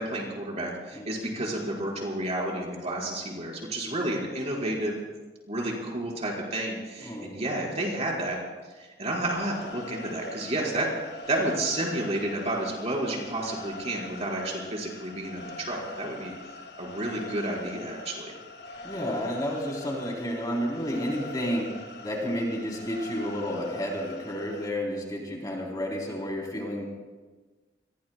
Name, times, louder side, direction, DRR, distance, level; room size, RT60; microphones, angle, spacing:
voice 1, 0.0-4.9 5.5-8.4 8.8-10.9 11.3-16.3 16.8-18.3, right 1 dB, 35° right, -2 dB, 4.5 m, -31 dB
voice 2, 7.0-7.4 18.8-21.7 22.0-26.8, equal, 20° left, -2 dB, 3.4 m, -31 dB
sound 1, 9.2-24.7, left 2 dB, 65° left, 1.7 m, -43 dB
29.0 x 22.0 x 2.2 m, 1.3 s
head